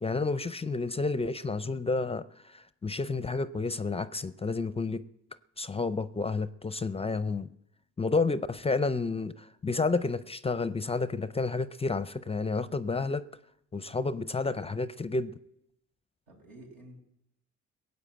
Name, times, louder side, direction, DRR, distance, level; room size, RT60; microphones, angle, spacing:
voice 1, 0.0-5.0 5.6-7.5 8.0-13.2 13.7-15.4, left 3 dB, 20° left, 0.5 m, -30 dB
voice 2, 16.3-17.0, right 1 dB, 80° right, 5.4 m, -51 dB
16.0 x 8.2 x 8.8 m
cardioid pair, 90°, 30 cm